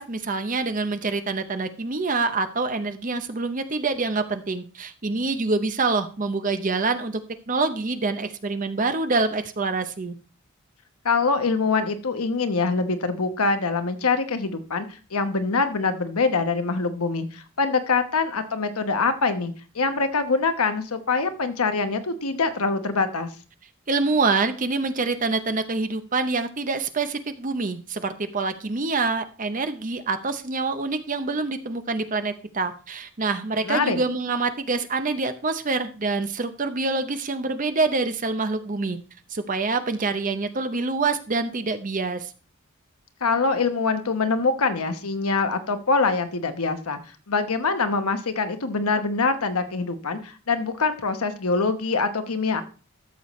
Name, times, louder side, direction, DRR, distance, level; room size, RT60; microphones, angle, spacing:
voice 1, 0.0-7.2 7.5-10.2 23.9-39.0 39.3-42.3, right 3 dB, 35° right, 9 dB, 0.7 m, -26 dB
voice 2, 11.0-23.3 33.6-34.0 43.2-47.0 47.3-52.6, left 4 dB, 80° left, 8 dB, 1.0 m, -24 dB
13.5 x 6.8 x 3.1 m, 0.37 s
head